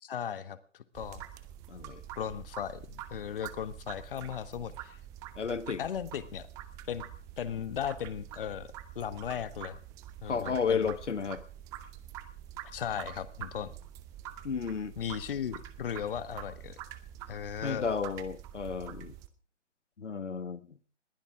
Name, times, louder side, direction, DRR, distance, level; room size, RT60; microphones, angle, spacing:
voice 1, 0.0-1.2 2.1-5.0 5.8-6.5 6.9-7.0 7.4-8.7 8.9-9.8 10.2-10.9 12.6-13.7 15.0-16.8 17.3-17.9, left 8 dB, 50° left, 1.4 m, -37 dB
sound 1, 1.0-19.3, right 11 dB, 10° right, 0.6 m, -46 dB
voice 2, 1.7-2.0 5.4-5.8 10.2-11.4 14.4-14.9 17.6-19.1 20.0-20.6, left 6 dB, 75° left, 1.4 m, -32 dB
21.0 x 16.0 x 3.7 m
figure-of-eight pair, 140°, 36 cm